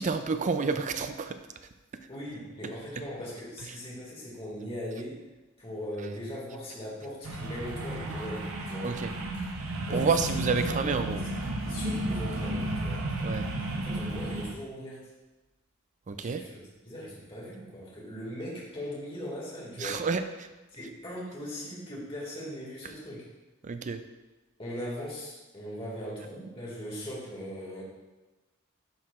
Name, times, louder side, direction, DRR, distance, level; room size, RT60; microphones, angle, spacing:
voice 1, 0.0-1.4 8.8-9.1 9.9-11.2 13.2-13.5 16.1-16.4 19.8-20.5 23.6-24.0, right 4 dB, 35° right, 9 dB, 0.4 m, -29 dB
voice 2, 2.1-5.2 5.6-9.0 9.9-10.7 11.1-11.3 11.6-13.0 13.8-15.1 16.2-20.1 20.7-23.3 24.6-27.8, equal, 30° left, -5 dB, 2.1 m, -39 dB
sound 1, 7.2-14.5, right 1 dB, 90° right, 0.8 m, -33 dB
11.0 x 4.7 x 2.5 m, 1.1 s
head